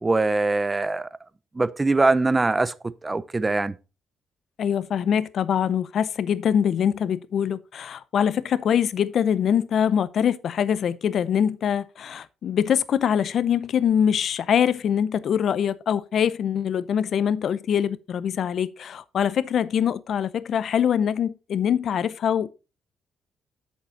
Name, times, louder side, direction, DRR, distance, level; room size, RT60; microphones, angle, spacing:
voice 1, 0.0-1.1 1.5-3.8, right 3 dB, 20° right, 0.5 m, -22 dB
voice 2, 4.6-22.5, left 8 dB, 60° left, 0.6 m, -23 dB
8.0 x 6.6 x 4.1 m
cardioid pair, 90°, 0 cm